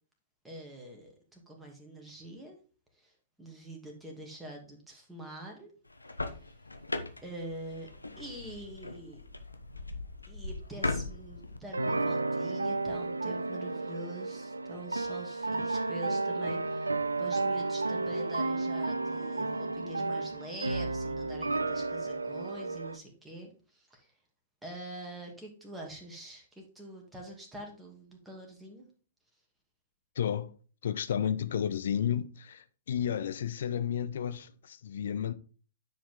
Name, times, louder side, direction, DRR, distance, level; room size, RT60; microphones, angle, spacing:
voice 1, 0.4-2.6 3.0-3.1 3.4-5.7 7.2-7.9 8.2-9.2 10.3-16.9 17.2-24.1 24.6-28.8, right 1 dB, 5° right, 2.4 m, -45 dB
sound 1, 5.9-11.6, left 2 dB, 85° left, 0.9 m, -39 dB
sound 2, 11.7-23.0, right 3 dB, 80° right, 0.5 m, -32 dB
voice 2, 30.2-30.5 30.8-35.3, left 9 dB, 55° left, 0.7 m, -32 dB
10.0 x 5.1 x 3.8 m
figure-of-eight pair, 110°, 0 cm